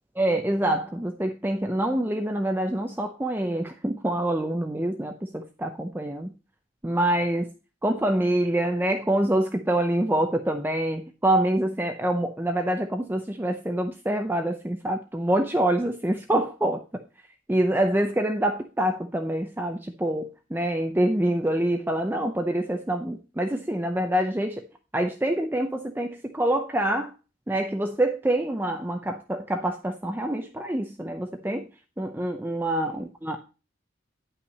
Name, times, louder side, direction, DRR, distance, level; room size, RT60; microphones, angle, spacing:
voice 1, 0.2-6.3 6.8-7.5 7.8-17.0 17.5-24.6 24.9-27.1 27.5-31.7 32.0-33.4, right 1 dB, 10° right, 5 dB, 0.6 m, -26 dB
10.0 x 5.7 x 4.1 m, 0.32 s
head